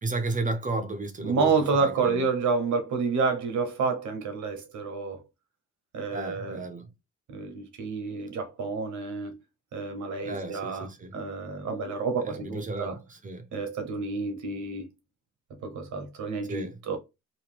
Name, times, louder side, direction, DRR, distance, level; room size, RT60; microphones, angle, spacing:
voice 1, 0.0-2.3 6.1-6.9 10.2-11.1 12.2-13.5 16.5-16.8, right 2 dB, 25° right, 0.7 m, -33 dB
voice 2, 1.2-5.2 5.9-6.6 7.3-9.4 9.7-10.9 11.1-13.0 13.5-14.9 15.6-17.0, right 4 dB, 70° right, 1.1 m, -29 dB
3.0 x 2.2 x 3.4 m
cardioid pair, 90°, 30 cm